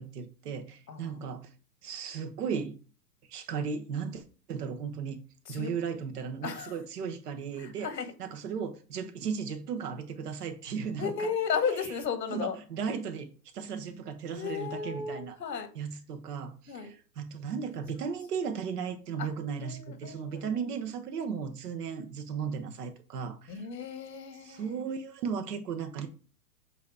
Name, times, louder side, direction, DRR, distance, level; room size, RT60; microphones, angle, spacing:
voice 1, 0.0-1.4 1.8-2.8 3.3-5.2 5.5-7.9 8.2-11.1 12.3-15.3 15.7-23.6 24.4-26.1, right 6 dB, 70° right, 1.3 m, -36 dB
voice 2, 0.9-1.3 5.5-5.7 6.4-6.8 7.6-8.1 11.0-12.6 14.3-15.7 16.7-16.9 19.2-19.3 19.6-20.6 23.5-24.8, left 6 dB, 85° left, 1.5 m, -34 dB
7.7 x 2.9 x 4.8 m
hypercardioid pair, 120°, 49 cm